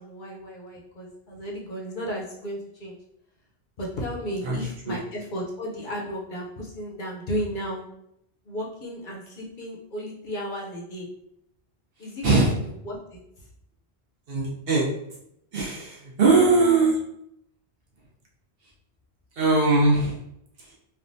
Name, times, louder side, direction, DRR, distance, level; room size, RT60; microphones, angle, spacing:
voice 1, 0.0-3.0 3.8-7.9 8.4-11.1 12.0-13.5, equal, 55° left, -2 dB, 0.7 m, -34 dB
voice 2, 14.3-14.9 15.5-17.0 19.4-20.2, right 3 dB, 65° right, -4 dB, 1.0 m, -20 dB
3.4 x 2.2 x 2.6 m, 0.76 s
omnidirectional pair, 1.1 m